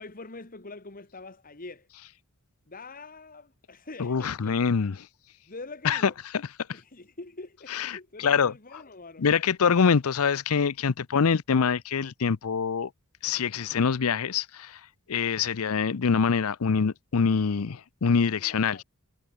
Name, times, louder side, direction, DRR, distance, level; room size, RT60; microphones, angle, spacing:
voice 1, 0.0-1.9 2.7-4.6 5.5-6.2 6.7-9.2 18.3-18.8, left 3 dB, 40° left, 1.9 m, -44 dB
voice 2, 4.0-5.0 5.8-6.0 6.7-6.8 7.7-8.5 9.2-12.9 13.2-14.8 15.1-18.8, left 6 dB, 75° left, 0.6 m, -25 dB
head